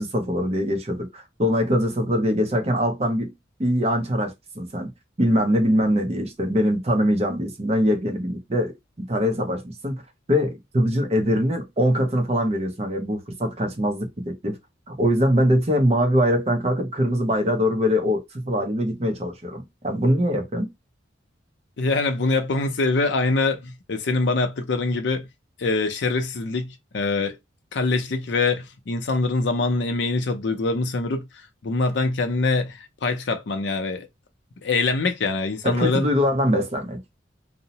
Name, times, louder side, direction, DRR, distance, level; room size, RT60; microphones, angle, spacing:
voice 1, 0.0-3.3 3.6-4.9 5.2-8.7 9.0-10.0 10.3-14.6 14.9-20.7 35.6-37.0, equal, 35° right, 0.6 m, -22 dB
voice 2, 21.8-25.2 25.6-27.4 27.7-31.2 31.6-34.1 34.6-36.1, left 3 dB, 65° left, 0.5 m, -24 dB
2.7 x 2.0 x 2.7 m
head